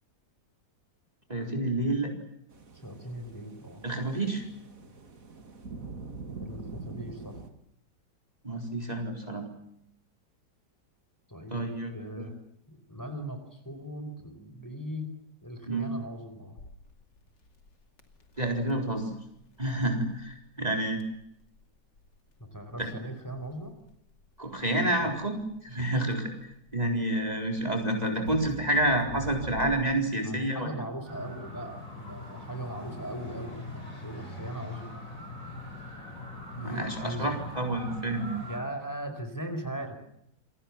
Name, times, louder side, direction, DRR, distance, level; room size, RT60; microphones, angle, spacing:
voice 1, 1.3-2.1 3.8-4.4 8.4-9.5 11.5-12.3 15.7-15.9 18.4-19.1 19.6-21.0 22.8-22.9 24.4-26.3 26.7-30.7 36.6-38.4, right 1 dB, 20° right, 3 dB, 4.2 m, -29 dB
sound 1, 2.5-7.5, right 4 dB, 50° right, 2.8 m, -44 dB
voice 2, 2.8-3.8 6.4-7.4 11.3-12.3 12.7-15.1 15.4-16.6 22.5-23.8 25.0-25.1 30.2-35.0 36.5-37.3 38.4-40.0, right 1 dB, 10° left, 7 dB, 4.5 m, -39 dB
Crackle, 16.6-30.1, left 2 dB, 90° left, 3.4 m, -47 dB
sound 2, 31.1-38.6, left 2 dB, 50° left, 8.4 m, -42 dB
29.0 x 23.5 x 7.3 m, 0.76 s
omnidirectional pair, 1.8 m